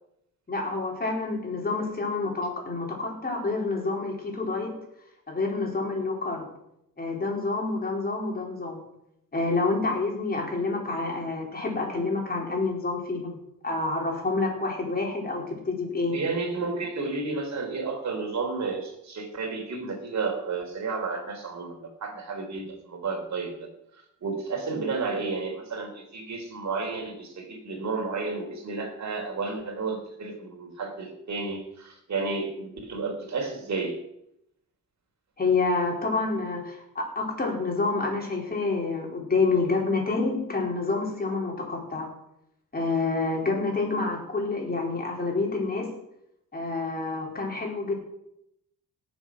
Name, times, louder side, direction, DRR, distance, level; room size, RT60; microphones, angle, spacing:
voice 1, 0.5-4.7 5.3-6.5 7.0-8.8 9.3-13.4 13.6-16.1 35.4-42.1 42.7-46.0 46.5-47.9, left 3 dB, 25° left, 0 dB, 4.2 m, -28 dB
voice 2, 16.1-34.0, right 4 dB, 50° right, 3 dB, 3.9 m, -32 dB
18.5 x 7.2 x 6.2 m, 0.79 s
cardioid pair, 130°, 35 cm